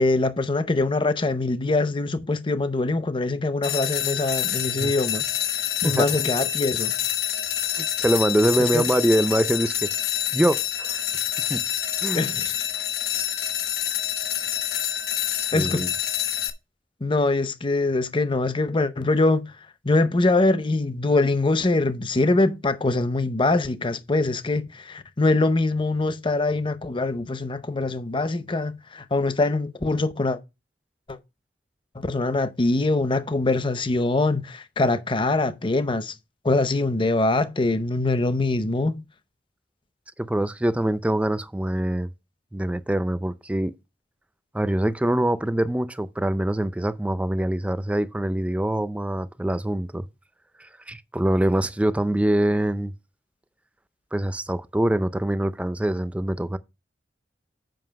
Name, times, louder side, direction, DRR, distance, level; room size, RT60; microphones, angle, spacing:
voice 1, 0.0-6.9 8.6-8.8 12.1-12.5 15.5-15.8 17.0-19.5 19.8-30.4 31.1-31.2 32.0-36.1 36.4-39.0, left 2 dB, 30° left, 0.6 m, -23 dB
sound 1, 3.6-16.5, left 10 dB, 65° left, 1.1 m, -27 dB
voice 2, 5.8-6.3 7.8-9.9 10.3-11.0 11.4-11.6 12.0-12.3 15.5-15.9 40.2-42.1 42.5-43.7 44.5-50.0 50.6-52.9 54.1-56.6, right 1 dB, 5° right, 0.4 m, -24 dB
7.8 x 5.3 x 5.1 m
head